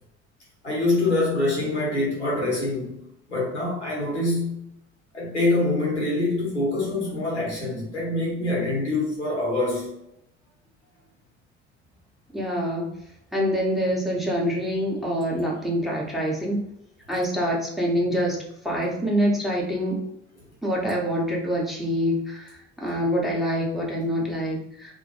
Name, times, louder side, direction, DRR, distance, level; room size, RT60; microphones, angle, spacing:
voice 1, 0.6-3.0 3.3-4.6 5.1-9.9 24.2-24.3, left 2 dB, 90° left, -4 dB, 0.7 m, -25 dB
voice 2, 12.3-12.9 13.3-16.6 17.1-18.4 18.6-20.0 20.6-24.9, equal, ahead, -3 dB, 0.6 m, -25 dB
2.2 x 2.1 x 2.7 m, 0.76 s
figure-of-eight pair, 50°, 33 cm